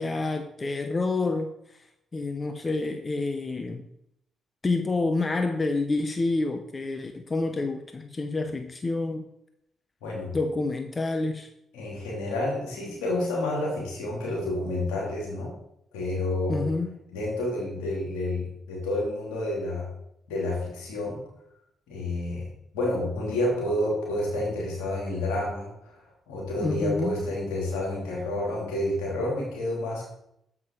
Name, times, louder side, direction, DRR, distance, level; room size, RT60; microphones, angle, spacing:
voice 1, 0.0-1.5 2.1-3.8 4.6-9.2 10.3-11.5 16.5-16.9 26.6-27.2, left 3 dB, 35° left, 6 dB, 0.7 m, -28 dB
voice 2, 11.7-15.5 15.9-16.6 17.1-19.9 20.3-21.2 21.9-30.1, left 1 dB, 80° left, -3 dB, 2.9 m, -29 dB
7.3 x 6.0 x 4.6 m, 0.78 s
hypercardioid pair, 45°, 0 cm